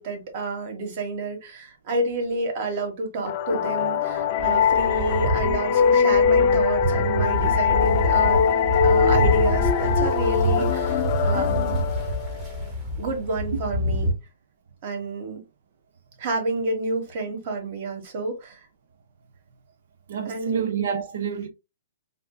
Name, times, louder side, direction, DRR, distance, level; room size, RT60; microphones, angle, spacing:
voice 1, 0.0-8.4 8.8-11.8 13.0-14.1 14.8-15.4 16.2-18.7 20.2-20.6 21.4-21.5, right 2 dB, 45° right, 1.2 m, -29 dB
sound 1, 3.3-12.7, left 7 dB, 40° left, 0.3 m, -22 dB
sound 2, 4.4-14.1, equal, 20° right, 1.0 m, -26 dB
voice 2, 20.1-21.5, right 7 dB, 60° right, 0.5 m, -28 dB
3.5 x 2.5 x 2.2 m
hypercardioid pair, 150°, 0 cm